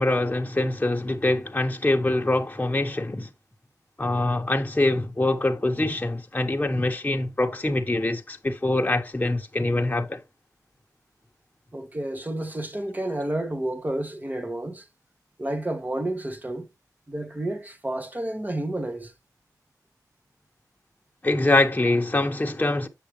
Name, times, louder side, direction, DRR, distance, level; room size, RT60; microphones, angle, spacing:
voice 1, 0.0-3.3 4.0-10.2 21.2-22.9, left 2 dB, 25° left, 1.1 m, -24 dB
voice 2, 11.7-14.8 15.4-16.7 17.1-19.1, right 1 dB, 25° right, 1.2 m, -30 dB
7.6 x 6.4 x 3.1 m
wide cardioid pair, 70°, 7 cm